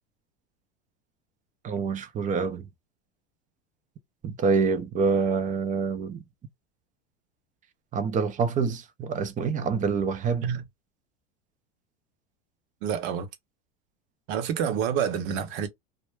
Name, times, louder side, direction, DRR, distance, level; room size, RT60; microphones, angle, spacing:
voice 1, 1.6-2.7 4.2-6.2 7.9-10.5, right 5 dB, 25° right, 0.5 m, -26 dB
voice 2, 12.8-13.3 14.3-15.7, right 8 dB, 65° right, 0.9 m, -28 dB
2.3 x 2.0 x 3.1 m
supercardioid pair, 115°, 32 cm